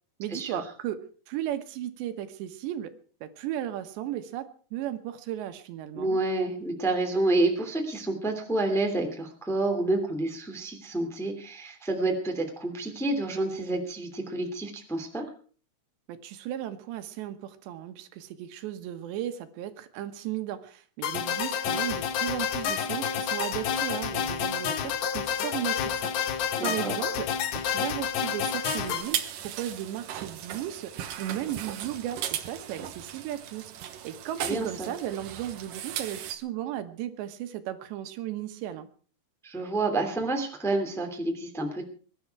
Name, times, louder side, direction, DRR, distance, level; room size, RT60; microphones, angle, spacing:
voice 1, 0.2-1.0 1.3-2.9 3.2-6.2 16.1-26.1 26.6-27.3 27.5-30.9 31.2-33.7 34.0-38.9, right 12 dB, 85° right, 9 dB, 3.5 m, -35 dB
voice 2, 5.9-15.2 26.6-26.9 34.4-34.9 39.4-41.8, right 2 dB, ahead, 3 dB, 1.6 m, -29 dB
sound 1, 21.0-29.0, left 8 dB, 75° left, 3.5 m, -29 dB
sound 2, 28.6-36.4, right 10 dB, 65° right, 2.5 m, -37 dB
22.5 x 11.0 x 4.7 m, 0.42 s
omnidirectional pair, 4.9 m